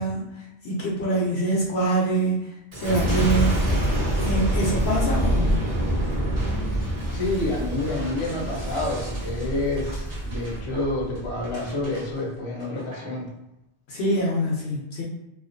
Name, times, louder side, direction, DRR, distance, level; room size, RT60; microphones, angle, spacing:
voice 1, 0.0-3.6 4.2-5.6 13.9-15.0, right 1 dB, 60° left, -4 dB, 0.8 m, -25 dB
Boom, 2.7-12.1 12.6-13.1, right 1 dB, 20° right, 0.5 m, -26 dB
voice 2, 7.1-13.3, left 2 dB, 35° left, -4 dB, 0.6 m, -28 dB
2.4 x 2.3 x 2.5 m, 0.91 s
omnidirectional pair, 1.3 m